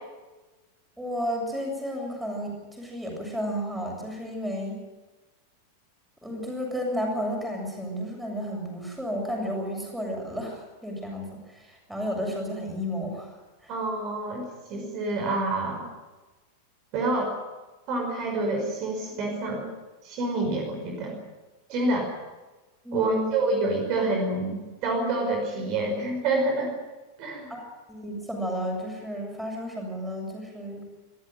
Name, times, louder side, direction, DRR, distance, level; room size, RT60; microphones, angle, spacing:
voice 1, 1.0-4.8 6.2-13.3 13.6-13.7 22.8-23.3 27.5-27.6 27.9-30.9, equal, 5° right, 1 dB, 7.3 m, -32 dB
voice 2, 13.7-15.9 16.9-17.4 17.9-19.7 20.0-21.2 21.7-22.1 22.9-26.7 27.2-27.5, right 2 dB, 40° right, 3 dB, 5.6 m, -27 dB
25.0 x 14.5 x 9.2 m, 1.2 s
figure-of-eight pair, 90°, 0 cm